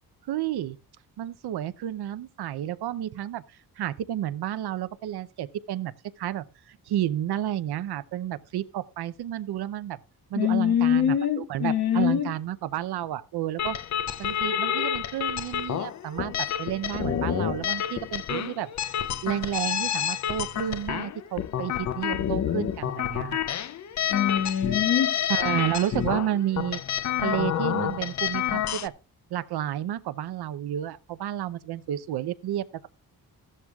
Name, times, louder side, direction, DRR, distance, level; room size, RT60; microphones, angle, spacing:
voice 1, 0.3-0.8 1.2-3.4 3.8-5.9 6.2-10.0 10.3-13.8 14.2-18.7 19.2-23.4 25.3-26.8 27.2-28.9 29.3-32.7, right 12 dB, 90° right, 0.7 m, -31 dB
voice 2, 10.3-12.3 24.1-25.1, left 9 dB, 80° left, 2.2 m, -24 dB
sound 1, 13.6-28.9, left 10 dB, 50° left, 0.5 m, -29 dB
14.5 x 12.0 x 2.4 m
wide cardioid pair, 120°, 38 cm